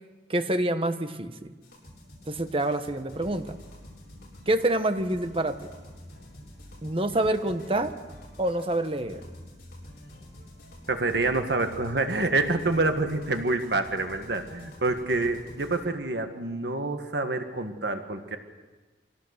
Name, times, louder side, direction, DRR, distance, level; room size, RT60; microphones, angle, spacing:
voice 1, 0.3-1.5 2.3-3.6 4.5-5.6 6.8-7.9 8.4-9.2, right 1 dB, 30° right, 9 dB, 1.1 m, -27 dB
sound 1, 1.6-15.8, left 1 dB, 55° left, 7.4 m, -47 dB
voice 2, 10.9-18.4, right 2 dB, 65° right, 6 dB, 1.7 m, -27 dB
24.0 x 17.5 x 6.6 m, 1.3 s
head